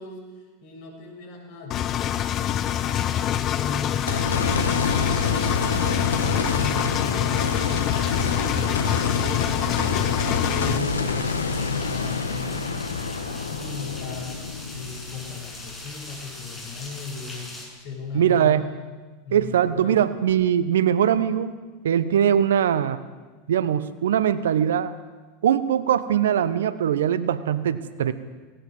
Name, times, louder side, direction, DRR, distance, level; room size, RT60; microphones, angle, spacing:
voice 1, 0.0-4.3 4.7-11.4 11.7-18.7 19.2-20.0, left 4 dB, 55° left, 2 dB, 6.6 m, -37 dB
Engine, 1.7-10.8, left 12 dB, 40° left, 0.6 m, -26 dB
sound 1, 1.9-17.7, left 2 dB, 15° left, 7.0 m, -41 dB
sound 2, 4.1-16.4 16.9-17.0 20.3-20.4, left 4 dB, 90° left, 1.5 m, -27 dB
voice 2, 18.1-18.6 19.3-21.5 21.8-23.0 23.5-24.9 25.4-28.1, right 9 dB, 75° right, 15 dB, 1.1 m, -21 dB
18.0 x 18.0 x 8.0 m, 1.3 s
hypercardioid pair, 90°, 0 cm